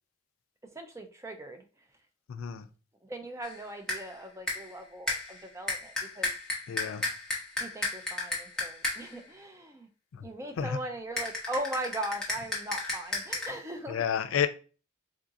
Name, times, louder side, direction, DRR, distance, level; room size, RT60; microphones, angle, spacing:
voice 1, 0.6-1.9 3.0-6.3 7.6-9.9 10.2-14.0, right 1 dB, 15° right, 6 dB, 0.3 m, -39 dB
voice 2, 2.3-2.7 6.7-7.1 10.1-10.3 10.6-10.7 13.9-14.5, left 8 dB, 80° left, 8 dB, 0.4 m, -30 dB
sound 1, 3.4-3.6 3.9-4.1 4.5-4.8 5.1-9.2 11.2-13.5, left 2 dB, 5° left, 0.7 m, -34 dB
3.8 x 2.4 x 2.6 m, 0.35 s
head